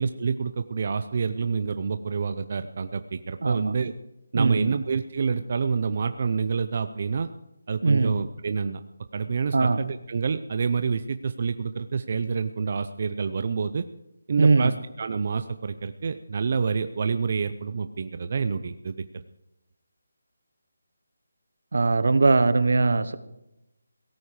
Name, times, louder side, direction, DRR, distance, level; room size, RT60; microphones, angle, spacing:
voice 1, 0.0-3.9 4.3-7.3 7.7-8.8 9.1-13.9 14.3-19.0, right 5 dB, 35° right, 10 dB, 0.6 m, -28 dB
voice 2, 3.4-3.7 4.3-4.7 7.8-8.2 9.5-9.8 14.4-14.7 21.7-23.2, right 3 dB, 65° right, 14 dB, 1.2 m, -20 dB
17.5 x 14.0 x 4.9 m, 0.88 s
figure-of-eight pair, 175°, 0 cm